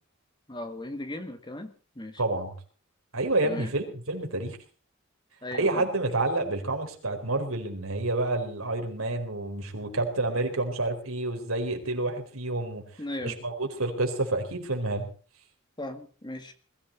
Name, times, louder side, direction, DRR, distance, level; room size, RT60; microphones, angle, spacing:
voice 1, 0.5-2.2 3.4-3.7 5.4-5.9 13.0-13.4 15.8-16.5, left 1 dB, 20° left, 7 dB, 1.8 m, -37 dB
voice 2, 2.2-2.5 3.1-4.6 5.5-12.8 13.2-15.1, right 2 dB, 85° right, 4 dB, 4.3 m, -29 dB
21.5 x 14.5 x 4.3 m, 0.39 s
head